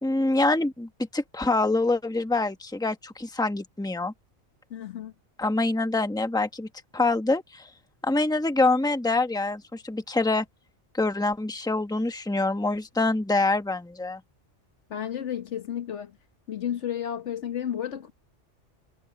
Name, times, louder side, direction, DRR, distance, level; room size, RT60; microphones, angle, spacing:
voice 1, 0.0-4.1 5.4-6.7 6.9-7.7 8.0-10.4 10.9-14.2, left 2 dB, 5° left, 1.2 m, -25 dB
voice 2, 4.7-5.1 14.9-16.2 16.5-18.1, left 9 dB, 75° left, 1.4 m, -32 dB
omnidirectional pair, 1.2 m